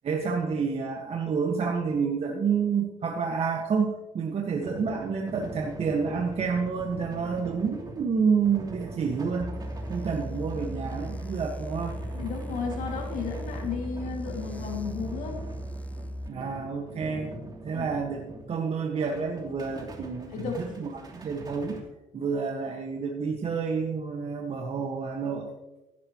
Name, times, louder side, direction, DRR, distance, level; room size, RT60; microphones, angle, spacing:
voice 1, 0.0-9.5 9.9-11.9 16.3-17.3 17.6-21.8 22.1-25.5, right 5 dB, 50° right, 1 dB, 1.6 m, -29 dB
sound 1, 4.4-18.6 19.0-21.8, right 2 dB, 30° right, 3.0 m, -43 dB
sound 2, 9.4-16.3, equal, 10° left, 0.6 m, -37 dB
voice 2, 12.1-15.4 17.7-17.9 20.3-20.8, left 6 dB, 80° left, 1 dB, 2.4 m, -34 dB
15.5 x 12.0 x 3.1 m, 1.0 s
cardioid pair, 100°, 13 cm